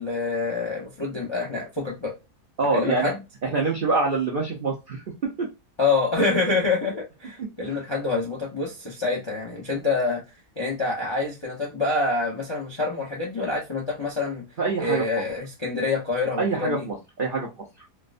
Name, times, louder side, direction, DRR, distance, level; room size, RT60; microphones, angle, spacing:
voice 1, 0.0-2.1 2.7-3.2 5.8-10.2 10.6-14.4 14.8-16.9, left 3 dB, 45° left, 0.3 m, -26 dB
voice 2, 2.6-3.1 3.4-5.0 5.4-5.5 7.6-7.7 14.6-15.0 16.4-17.5, right 3 dB, 65° right, 0.5 m, -25 dB
4.3 x 2.1 x 2.5 m
omnidirectional pair, 1.8 m